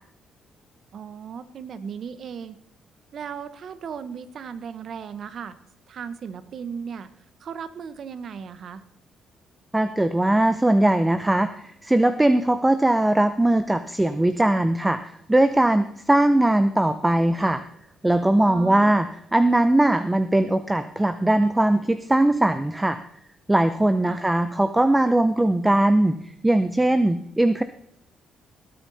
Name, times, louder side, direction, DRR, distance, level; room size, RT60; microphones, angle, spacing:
voice 1, 0.9-2.6 3.1-5.6 5.9-7.1 7.4-8.8 18.4-19.0 24.1-24.2, right 7 dB, 60° right, 13 dB, 1.2 m, -36 dB
voice 2, 9.7-17.6 18.0-23.0 23.5-26.2 26.4-27.6, right 1 dB, 10° right, 11 dB, 0.8 m, -20 dB
18.0 x 9.0 x 4.2 m, 0.72 s
cardioid pair, 90°, 0 cm